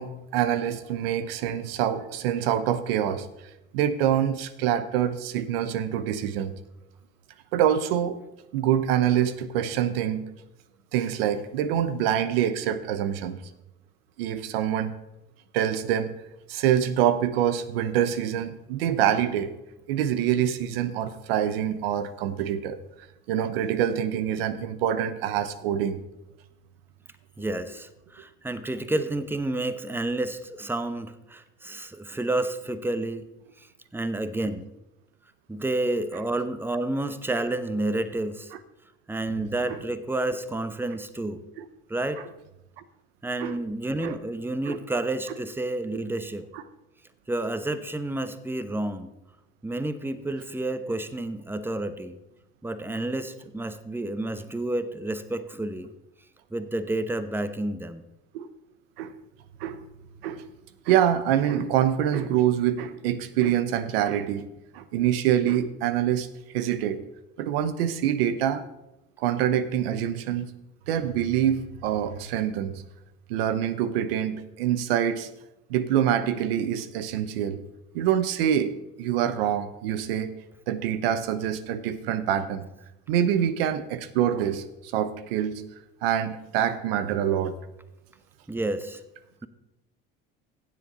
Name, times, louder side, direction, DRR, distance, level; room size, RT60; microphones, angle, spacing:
voice 1, 0.0-3.3 3.7-6.6 7.5-8.2 8.5-10.3 10.9-13.4 14.2-14.9 15.5-16.1 16.5-19.5 19.9-22.8 23.3-26.0 39.7-39.8 41.6-41.7 43.4-43.6 44.0-44.2 44.7-44.8 46.5-46.6 58.3-58.5 59.0-59.1 59.6-59.8 60.2-60.5 60.9-64.5 64.7-66.3 66.5-67.0 67.4-68.6 69.2-70.5 70.9-72.8 73.3-75.3 75.7-77.6 77.9-80.3 80.7-82.7 83.1-85.6 86.0-87.6, right 10 dB, 85° right, 13 dB, 0.8 m, -25 dB
voice 2, 27.4-33.3 33.6-33.7 33.9-34.7 35.5-38.5 39.1-41.4 41.9-42.2 43.2-46.5 47.3-49.1 49.6-52.2 52.6-55.9 56.5-58.0 88.5-89.0, right 2 dB, 5° right, 12 dB, 0.9 m, -30 dB
16.5 x 7.6 x 3.9 m, 0.93 s
supercardioid pair, 80°, 29 cm